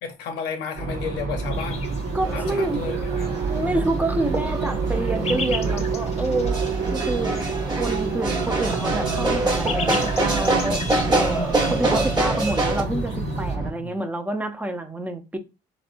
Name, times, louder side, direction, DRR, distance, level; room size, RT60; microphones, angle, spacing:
voice 1, 0.0-3.3 11.6-11.8 13.8-13.9, left 6 dB, 90° left, 0.8 m, -33 dB
sound 1, 0.8-13.7, right 4 dB, 55° right, 1.1 m, -27 dB
sound 2, 1.5-13.5, left 4 dB, 40° left, 0.6 m, -39 dB
voice 2, 2.1-3.0 3.5-6.6 6.9-7.5 7.7-11.4 11.7-15.4, right 1 dB, 10° right, 0.5 m, -28 dB
sound 3, 2.2-12.8, right 2 dB, 25° right, 1.2 m, -26 dB
4.1 x 2.1 x 2.5 m
cardioid pair, 110°, 17 cm